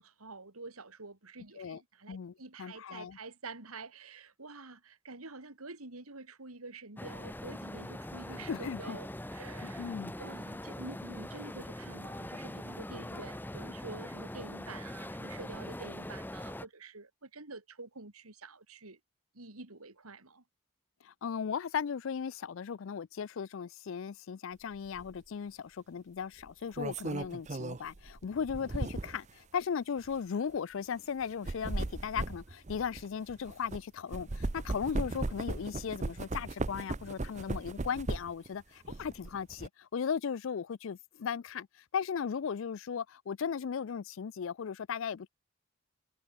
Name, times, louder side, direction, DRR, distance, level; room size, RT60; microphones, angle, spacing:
voice 1, 0.0-9.9 10.2-19.0 19.3-20.4, right 3 dB, 90° right, 3.2 m, -48 dB
voice 2, 2.1-3.2 8.3-9.0 9.6-10.1 21.0-41.7 41.9-45.3, left 7 dB, 65° left, 0.4 m, -37 dB
sound 1, 7.0-16.7, left 1 dB, 10° left, 1.5 m, -42 dB
sound 2, 24.9-25.1 26.4-29.3 30.0-30.1 31.2-33.8 34.1-38.5 38.8-39.7, right 2 dB, 35° right, 0.6 m, -37 dB
head